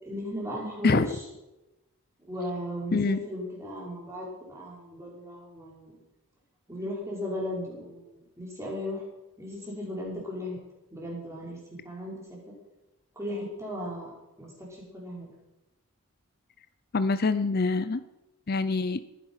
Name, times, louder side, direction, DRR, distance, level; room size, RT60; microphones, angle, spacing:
voice 1, 0.0-1.0 2.2-5.9 6.7-9.0 9.4-10.6 10.9-11.6 11.8-12.2 13.2-14.1 14.4-15.3, equal, 15° right, -4 dB, 5.6 m, -36 dB
voice 2, 16.9-18.0 18.5-19.0, left 3 dB, 45° left, 13 dB, 0.5 m, -25 dB
20.5 x 10.5 x 5.7 m, 0.99 s
head